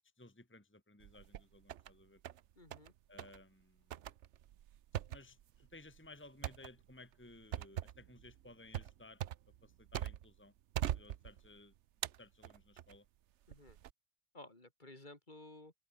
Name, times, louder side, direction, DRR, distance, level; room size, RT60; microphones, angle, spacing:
voice 1, 0.2-2.2 3.1-3.9 5.1-9.2 9.6-11.7 12.2-13.1, left 2 dB, 10° left, 1.8 m, -58 dB
sound 1, 1.0-1.9 2.2-2.9 3.2-3.4 3.9-10.4 10.7-11.6 12.0-13.0 13.5-13.9, right 11 dB, 85° right, 1.0 m, -42 dB
voice 2, 2.6-2.9 13.5-13.8 14.3-15.7, left 2 dB, 45° left, 3.4 m, -55 dB
omnidirectional pair, 1.2 m